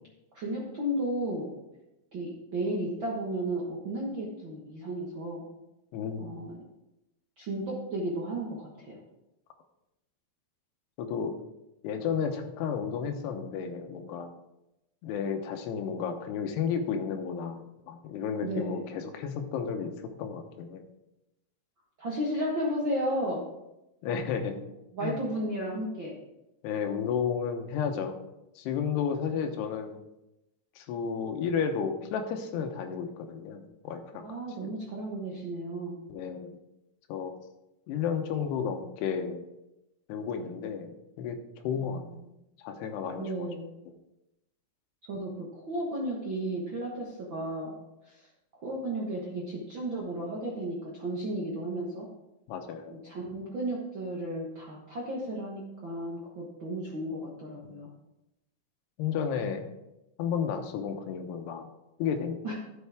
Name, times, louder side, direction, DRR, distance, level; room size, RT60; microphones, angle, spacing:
voice 1, 0.3-1.5 2.1-5.5 6.2-6.5 7.4-9.0 18.4-18.8 22.0-23.4 24.9-26.2 34.2-36.0 41.8-42.0 43.2-43.7 45.1-47.7 48.1-48.2 48.6-52.1 52.9-57.9 62.4-62.5, right 1 dB, 80° right, -4 dB, 1.0 m, -33 dB
voice 2, 5.9-6.2 11.0-11.4 11.8-14.3 15.0-19.9 20.2-20.8 24.0-24.6 25.0-25.2 26.6-28.2 28.6-30.0 30.8-34.7 36.1-36.6 37.1-37.3 37.9-39.4 40.1-41.4 41.6-42.0 42.6-43.5 52.5-53.0 57.6-57.8 59.0-59.7 60.2-61.7 62.0-62.5, left 7 dB, 85° left, 6 dB, 3.1 m, -32 dB
12.5 x 7.6 x 3.5 m, 0.92 s
omnidirectional pair, 4.6 m